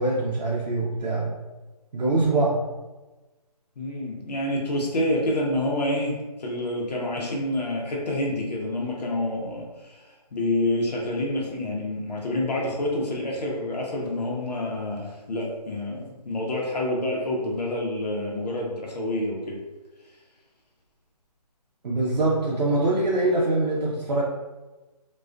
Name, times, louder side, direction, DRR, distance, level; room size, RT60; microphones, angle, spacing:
voice 1, 0.0-1.3 1.9-2.6 21.8-24.2, right 2 dB, 85° right, -5 dB, 0.6 m, -23 dB
voice 2, 3.8-10.0 10.3-19.6, left 1 dB, 75° left, -2 dB, 0.7 m, -28 dB
2.3 x 2.2 x 2.4 m, 1.1 s
hypercardioid pair, 175°, 21 cm